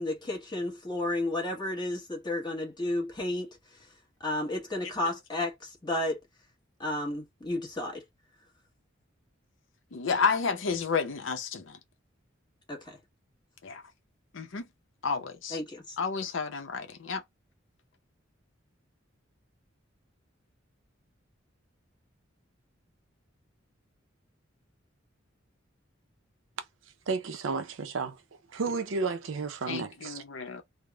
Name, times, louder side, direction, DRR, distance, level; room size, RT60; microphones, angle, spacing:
voice 1, 0.0-3.6 4.2-6.2 6.8-8.0 12.7-13.0 15.5-16.0, left 1 dB, 20° left, 1.1 m, -32 dB
voice 2, 9.9-11.8 13.6-13.8 14.3-14.7 15.0-15.6 16.0-17.2 29.7-30.6, left 5 dB, 70° left, 0.6 m, -31 dB
voice 3, 27.1-28.2 28.5-30.2, right 4 dB, 80° right, 0.6 m, -32 dB
3.3 x 2.1 x 2.2 m
head